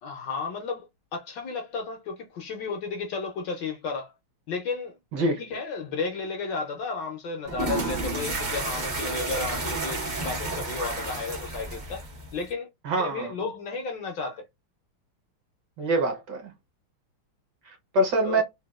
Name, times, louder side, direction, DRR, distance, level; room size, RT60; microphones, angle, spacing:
voice 1, 0.0-4.1 4.5-5.0 5.4-12.1 12.3-12.7 13.0-14.4 18.2-18.4, left 4 dB, 70° left, 1.1 m, -33 dB
sound 1, 7.4-12.5, right 2 dB, 85° right, 0.4 m, -31 dB
voice 2, 12.8-13.3 15.8-16.5 17.6-18.4, right 1 dB, 65° right, 1.3 m, -25 dB
3.9 x 2.2 x 2.3 m
omnidirectional pair, 2.4 m